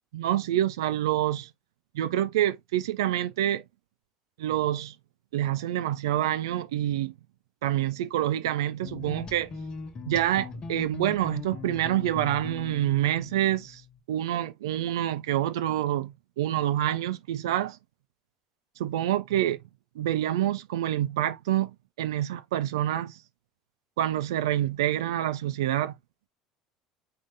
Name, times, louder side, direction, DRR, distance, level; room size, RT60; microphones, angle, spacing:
voice 1, 0.1-1.5 1.9-3.6 4.4-5.0 5.3-7.1 7.6-9.5 10.1-13.8 14.1-17.8 18.8-19.6 20.0-23.2 24.0-26.0, right 12 dB, 75° right, 0.6 m, -27 dB
sound 1, 8.8-14.0, left 3 dB, 35° left, 1.3 m, -40 dB
5.0 x 3.8 x 2.6 m
hypercardioid pair, 70°, 2 cm